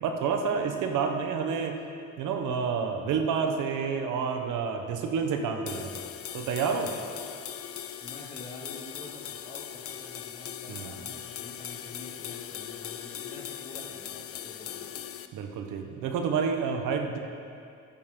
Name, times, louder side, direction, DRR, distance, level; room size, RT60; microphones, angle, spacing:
voice 1, 0.0-1.8 2.2-6.9 10.7-11.0 15.3-17.2, right 6 dB, 90° right, 4 dB, 1.0 m, -29 dB
sound 1, 5.7-15.3, left 10 dB, 50° left, 0.5 m, -40 dB
voice 2, 8.0-15.0, left 2 dB, 25° left, -2 dB, 2.2 m, -47 dB
12.0 x 9.8 x 3.7 m, 2.4 s
cardioid pair, 90°, 30 cm